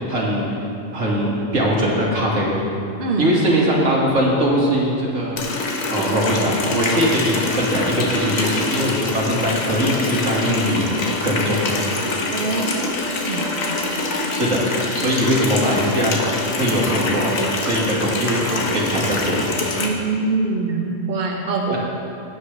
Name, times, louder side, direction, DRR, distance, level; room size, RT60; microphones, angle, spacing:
voice 1, 0.1-0.5 0.9-2.6 3.2-5.6 5.9-10.9 11.2-11.6 14.3-14.6 14.9-19.5 21.7-21.8, equal, 75° right, -4 dB, 2.2 m, -21 dB
Water tap faucet, 5.4-19.9, left 2 dB, 90° left, 1.5 m, -25 dB
voice 2, 12.3-12.9 13.2-13.5 19.8-21.8, right 3 dB, 50° right, -1 dB, 1.1 m, -23 dB
15.5 x 8.5 x 3.2 m, 2.6 s
omnidirectional pair, 1.4 m